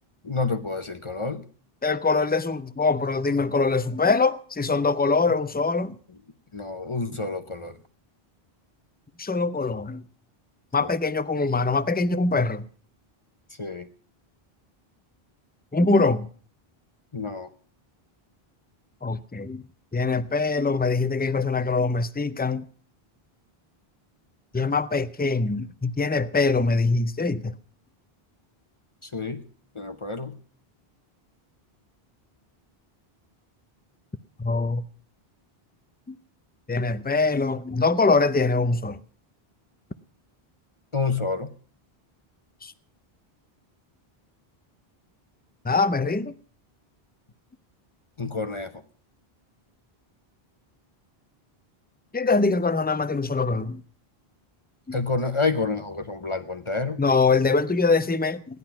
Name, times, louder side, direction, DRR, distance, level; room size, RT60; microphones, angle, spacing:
voice 1, 0.2-1.4 6.5-7.8 10.8-10.9 13.6-13.9 17.1-17.5 29.0-29.4 29.7-30.4 40.9-41.5 48.2-48.8 54.9-57.0, left 3 dB, 30° left, 0.8 m, -28 dB
voice 2, 1.8-6.0 9.2-10.0 10.7-12.6 15.7-16.3 19.0-19.6 19.9-22.7 24.5-27.6 34.4-34.8 36.1-36.2 36.7-39.0 42.6-42.7 45.6-46.3 52.1-53.8 54.9-55.0 57.0-58.6, left 3 dB, 15° left, 0.4 m, -23 dB
16.0 x 11.0 x 5.8 m
omnidirectional pair, 1.0 m